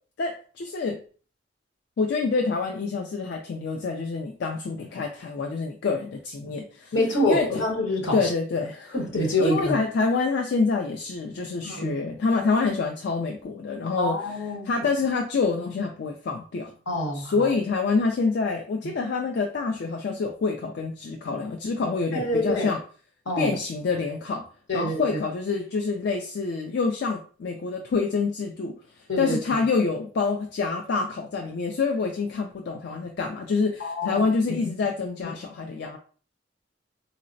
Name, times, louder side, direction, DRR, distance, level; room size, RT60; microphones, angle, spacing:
voice 1, 0.2-1.0 2.0-6.9 7.2-7.5 8.1-9.0 9.4-14.2 14.7-16.7 17.1-22.8 23.4-24.4 24.7-36.0, left 4 dB, 65° left, 0.4 m, -27 dB
voice 2, 6.9-8.3 8.9-9.8 11.6-12.0 14.0-14.7 16.9-17.5 22.1-22.7 23.3-23.5 24.7-25.2 29.1-29.4 33.8-34.2 35.2-35.3, left 1 dB, 80° left, 0.9 m, -26 dB
4.0 x 2.0 x 2.5 m
head